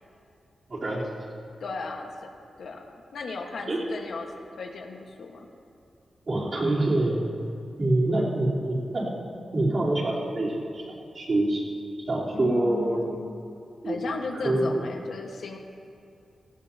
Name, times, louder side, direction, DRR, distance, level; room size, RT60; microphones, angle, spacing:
voice 1, 0.7-1.0 3.7-3.8 6.3-7.2 7.8-9.1 9.5-10.8 11.1-11.6 12.1-13.0 13.8-14.0 14.4-14.8, right 1 dB, 45° right, -7 dB, 3.5 m, -25 dB
voice 2, 1.6-2.3 2.6-5.5 12.3-13.4 13.8-15.6, left 4 dB, 70° left, 2 dB, 1.4 m, -36 dB
17.5 x 16.0 x 2.8 m, 2.5 s
wide cardioid pair, 135°, 0 cm